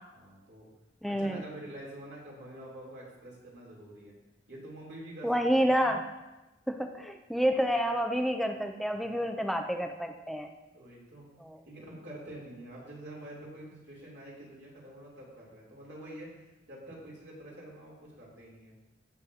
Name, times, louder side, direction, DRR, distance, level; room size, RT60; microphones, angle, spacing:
voice 1, 0.1-0.7 1.1-4.1 4.5-5.7 10.7-11.2 11.6-18.7, right 1 dB, 60° right, -5 dB, 3.1 m, -47 dB
voice 2, 1.0-1.4 5.2-6.1 6.7-10.5 11.4-11.6, equal, ahead, 4 dB, 0.4 m, -29 dB
16.0 x 6.4 x 2.8 m, 1.0 s
head